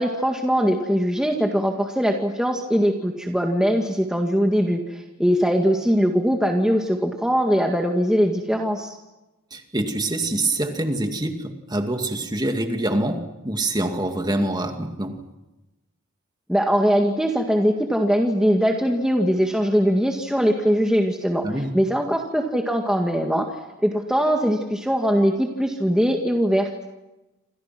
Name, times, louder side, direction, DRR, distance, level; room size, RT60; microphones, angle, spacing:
voice 1, 0.0-9.0 16.5-21.5 21.7-23.5 23.8-26.7, equal, 5° right, 2 dB, 1.9 m, -21 dB
voice 2, 9.5-15.2 21.4-21.8, right 1 dB, 20° right, 5 dB, 2.4 m, -25 dB
28.5 x 27.0 x 6.1 m, 1.0 s
head